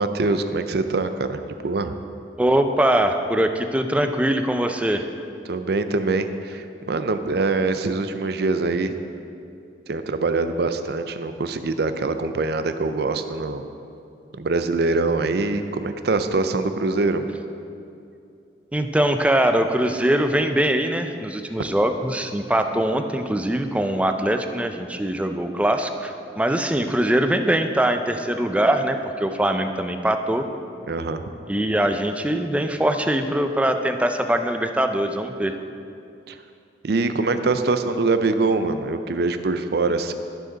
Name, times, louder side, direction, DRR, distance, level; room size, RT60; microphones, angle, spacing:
voice 1, 0.0-1.9 5.5-9.0 9.9-13.7 14.3-17.3 30.8-31.2 36.3-36.4 36.8-40.1, right 3 dB, 60° right, 9 dB, 0.5 m, -24 dB
voice 2, 2.4-5.1 18.7-30.5 31.5-35.5, right 1 dB, 5° right, 6 dB, 0.4 m, -22 dB
12.0 x 6.6 x 3.9 m, 2.6 s
head